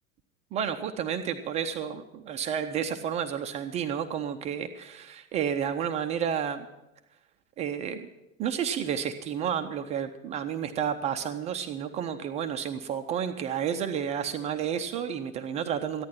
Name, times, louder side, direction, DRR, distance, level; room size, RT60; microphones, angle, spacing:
voice 1, 0.5-6.7 7.6-8.1 8.4-16.0, right 8 dB, 15° right, 7 dB, 0.4 m, -31 dB
14.5 x 10.5 x 5.6 m, 0.95 s
figure-of-eight pair, 85°, 43 cm